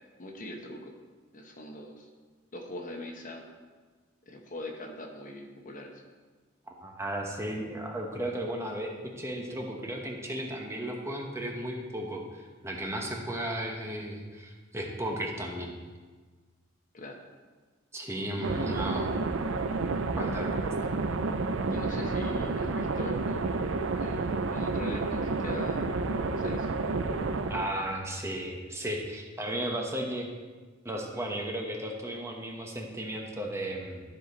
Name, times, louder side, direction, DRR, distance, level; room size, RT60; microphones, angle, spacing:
voice 1, 0.2-0.9 1.3-2.1 2.5-3.4 4.3-6.0 16.9-17.2 18.4-19.1 21.7-23.4 24.0-25.9 26.4-26.7, left 1 dB, 40° left, 3 dB, 1.0 m, -41 dB
voice 2, 6.7-15.8 17.9-19.1 20.2-20.5 27.5-30.3 30.8-34.0, right 1 dB, 15° right, 1 dB, 0.9 m, -35 dB
sound 1, 18.4-27.7, right 3 dB, 75° right, 0.5 m, -30 dB
12.5 x 5.0 x 4.0 m, 1.4 s
head